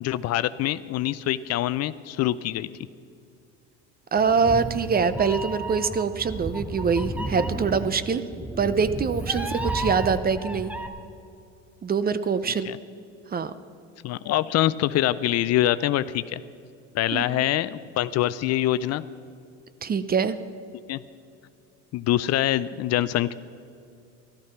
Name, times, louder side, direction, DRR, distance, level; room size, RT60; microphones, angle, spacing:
voice 1, 0.0-2.7 12.6-12.8 14.0-16.4 16.9-19.0 20.9-21.0 21.9-23.3, left 13 dB, 50° left, 16 dB, 0.5 m, -24 dB
voice 2, 4.1-8.2 8.6-10.7 11.8-12.7 13.3-13.5 17.1-17.3 19.8-20.4, right 5 dB, 25° right, 14 dB, 0.7 m, -24 dB
Meow, 4.2-10.9, right 1 dB, 5° right, 1.1 m, -32 dB
14.0 x 13.0 x 5.9 m, 2.5 s
supercardioid pair, 85°, 33 cm